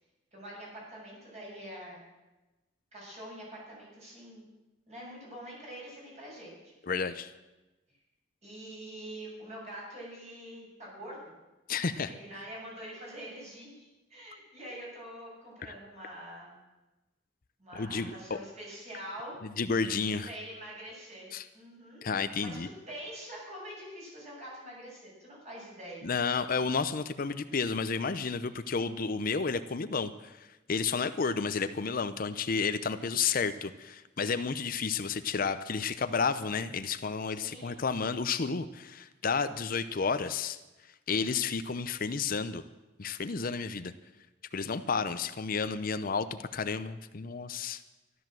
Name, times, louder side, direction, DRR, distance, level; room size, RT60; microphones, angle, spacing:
voice 1, 0.3-2.0 2.9-4.5 4.9-6.7 8.4-11.3 12.1-16.5 17.6-19.3 20.2-22.1 22.4-22.6 22.9-26.1 37.3-37.7, equal, 35° right, -4 dB, 7.2 m, -45 dB
voice 2, 6.8-7.3 11.7-12.1 15.6-15.7 17.7-18.4 19.6-20.3 21.3-21.5 22.0-22.7 26.0-40.6 41.1-42.6 43.0-43.9 44.5-47.8, left 5 dB, 45° left, 11 dB, 0.6 m, -31 dB
13.0 x 12.5 x 7.6 m, 1.1 s
head